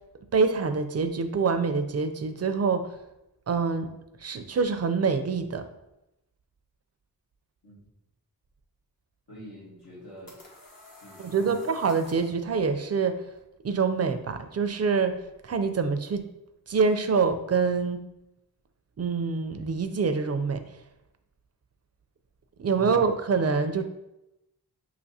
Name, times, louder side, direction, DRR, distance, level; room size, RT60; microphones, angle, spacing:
voice 1, 0.3-2.9 3.5-3.9 4.2-5.6 11.2-13.2 13.6-15.2 15.4-16.3 16.7-18.0 19.0-20.6 22.6-23.8, right 5 dB, 40° right, 8 dB, 0.4 m, -25 dB
voice 2, 9.3-10.3 11.0-11.6 22.7-23.1, right 1 dB, 75° left, -7 dB, 1.5 m, -44 dB
sound 1, 9.8-12.4, left 2 dB, 60° left, 1.1 m, -50 dB
5.8 x 2.9 x 2.7 m, 0.91 s
wide cardioid pair, 65°, 39 cm